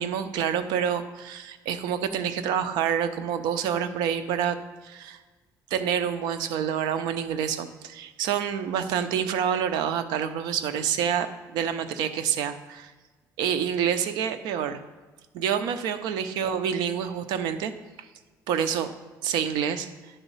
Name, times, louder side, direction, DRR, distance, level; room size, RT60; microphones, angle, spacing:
voice 1, 0.0-4.6 4.8-5.2 5.7-12.9 13.4-14.8 15.3-17.7 18.0-18.1 18.5-18.9 19.2-19.9, right 8 dB, 85° right, 10 dB, 0.6 m, -27 dB
10.0 x 4.0 x 5.4 m, 1.3 s
cardioid pair, 145°, 7 cm